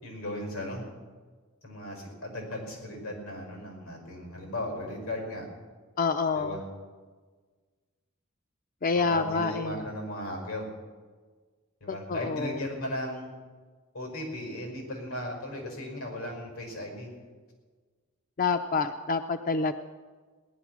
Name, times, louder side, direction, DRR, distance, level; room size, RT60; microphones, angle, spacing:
voice 1, 0.0-0.9 1.6-5.4 6.3-6.6 8.9-10.7 11.8-13.3 13.9-17.1, left 1 dB, 90° left, 1 dB, 5.8 m, -36 dB
voice 2, 6.0-6.6 8.8-9.8 11.9-12.6 18.4-19.7, left 4 dB, 40° left, 8 dB, 0.5 m, -27 dB
18.0 x 11.0 x 6.1 m, 1.4 s
head